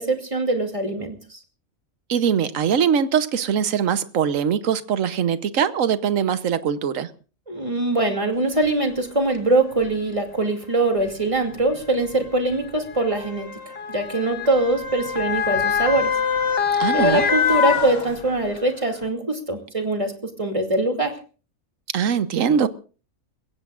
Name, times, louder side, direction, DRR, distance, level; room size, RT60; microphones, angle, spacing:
voice 1, 0.0-1.4 7.5-13.5 13.9-16.1 16.9-20.1 20.4-21.1, right 2 dB, 25° right, 2.6 m, -22 dB
voice 2, 2.1-7.1 16.8-17.2 21.9-22.7, right 7 dB, 70° right, 1.3 m, -22 dB
Motor vehicle (road) / Siren, 8.7-8.8 9.7-9.9 11.0-18.6 19.0-19.1, left 6 dB, 45° left, 1.5 m, -25 dB
29.5 x 15.5 x 2.5 m
omnidirectional pair, 1.4 m